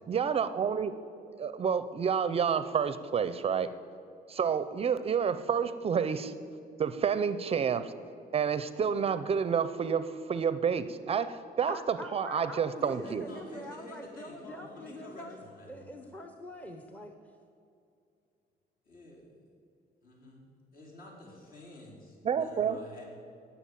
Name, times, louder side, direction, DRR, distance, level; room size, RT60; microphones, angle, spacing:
voice 1, 0.1-0.9 1.4-3.7 4.3-6.3 6.8-7.9 8.3-13.2 22.3-22.8, right 7 dB, 35° right, 13 dB, 0.5 m, -29 dB
voice 2, 11.7-15.4 15.7-17.1, equal, 10° left, 5 dB, 0.8 m, -44 dB
voice 3, 12.8-16.1 18.8-19.4 20.0-23.0, left 1 dB, 55° left, -3 dB, 4.5 m, -50 dB
17.5 x 7.0 x 8.5 m, 2.5 s
cardioid pair, 160°, 17 cm